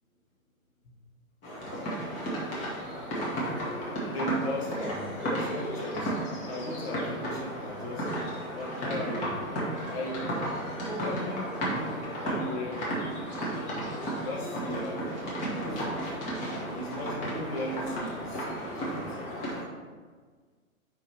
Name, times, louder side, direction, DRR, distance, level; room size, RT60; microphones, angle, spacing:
sound 1, 1.4-19.6, right 1 dB, 20° left, 1.1 m, -33 dB
voice 1, 4.1-8.1 8.5-9.4 9.8-10.3 10.9-11.5 11.8-12.8 14.2-15.1 15.5-16.2 16.7-19.4, left 1 dB, 45° left, -2 dB, 1.3 m, -37 dB
4.8 x 4.6 x 4.2 m, 1.5 s
figure-of-eight pair, 120°, 42 cm